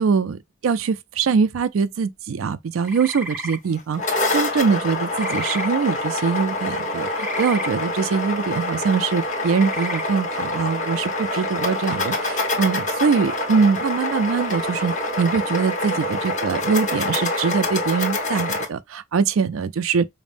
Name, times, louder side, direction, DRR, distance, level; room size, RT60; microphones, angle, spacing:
voice 1, 0.0-20.1, right 5 dB, 85° right, 0.4 m, -23 dB
sound 1, 2.8-3.6 5.1-5.7 7.2-7.7 9.5-10.0, equal, 10° right, 0.6 m, -32 dB
sound 2, 3.8-18.7, left 2 dB, 40° left, 1.3 m, -26 dB
5.1 x 2.1 x 2.5 m
head